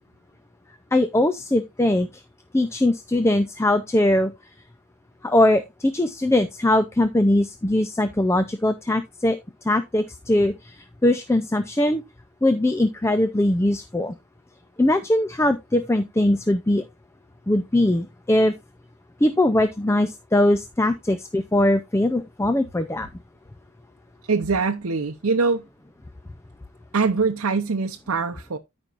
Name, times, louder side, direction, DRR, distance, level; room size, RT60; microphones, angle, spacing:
voice 1, 0.9-2.2 2.5-4.3 5.2-9.4 9.6-12.0 12.4-14.1 14.8-16.8 17.5-18.5 19.2-23.1, left 1 dB, 10° left, 0.4 m, -21 dB
voice 2, 24.3-25.7 26.9-28.6, right 4 dB, 75° right, 0.7 m, -23 dB
13.5 x 5.3 x 2.5 m
head